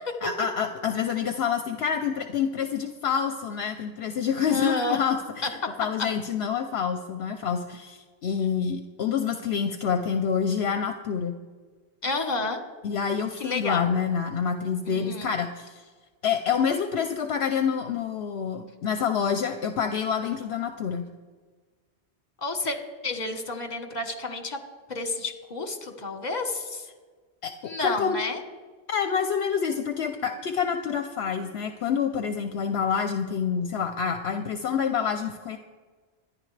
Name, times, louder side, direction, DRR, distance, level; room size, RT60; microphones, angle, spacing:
voice 1, 0.2-11.4 12.8-15.8 16.2-21.1 27.4-28.2 28.9-35.6, left 7 dB, 70° left, 7 dB, 0.9 m, -27 dB
voice 2, 4.5-5.0 5.4-5.5 6.0-6.1 12.0-12.6 13.4-13.9 14.9-15.3 22.4-22.8 23.0-24.6 24.9-26.9 27.6-28.4, left 3 dB, 40° left, 6 dB, 1.4 m, -30 dB
24.0 x 10.0 x 3.3 m, 1.4 s
omnidirectional pair, 1.2 m